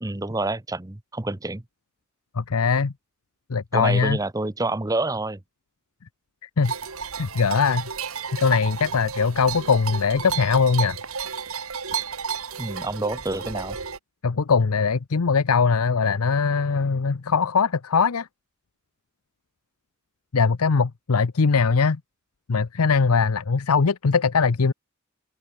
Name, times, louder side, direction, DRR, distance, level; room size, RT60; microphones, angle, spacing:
voice 1, 0.0-1.6 3.7-5.4 12.6-13.8, right 2 dB, 15° right, 0.7 m, -28 dB
voice 2, 2.4-2.9 3.5-4.2 6.6-6.7 7.2-7.9 8.4-11.0 14.2-18.3 20.3-22.0 22.5-24.7, left 5 dB, 90° left, 0.7 m, -21 dB
sound 1, 6.6-14.0, right 6 dB, 80° right, 2.0 m, -32 dB
head